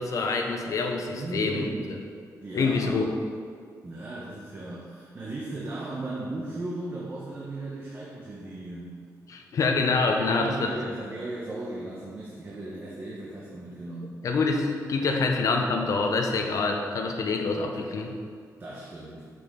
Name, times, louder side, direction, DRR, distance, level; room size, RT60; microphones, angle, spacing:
voice 1, 0.0-2.0 2.5-3.1 9.3-10.7 14.0-18.2, left 4 dB, 55° left, 2 dB, 0.7 m, -26 dB
voice 2, 1.1-2.0 2.4-3.1 3.8-9.0 10.2-14.2 15.0-15.3 18.6-19.2, right 2 dB, 30° right, -5 dB, 0.9 m, -36 dB
6.8 x 6.0 x 3.7 m, 2.1 s
wide cardioid pair, 155°, 7 cm